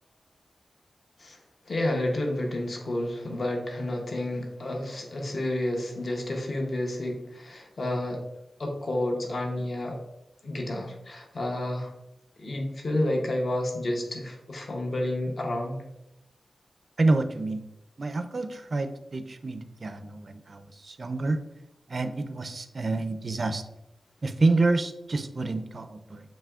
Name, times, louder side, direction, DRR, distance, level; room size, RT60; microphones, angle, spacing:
voice 1, 1.7-8.2 8.6-10.0 10.4-11.9 12.4-15.8, left 1 dB, 45° left, 1 dB, 0.7 m, -30 dB
voice 2, 17.0-17.6 18.0-21.4 21.9-23.6 24.2-26.2, right 3 dB, 40° right, 8 dB, 0.4 m, -28 dB
7.3 x 3.0 x 2.3 m, 0.89 s
wide cardioid pair, 120°, 0 cm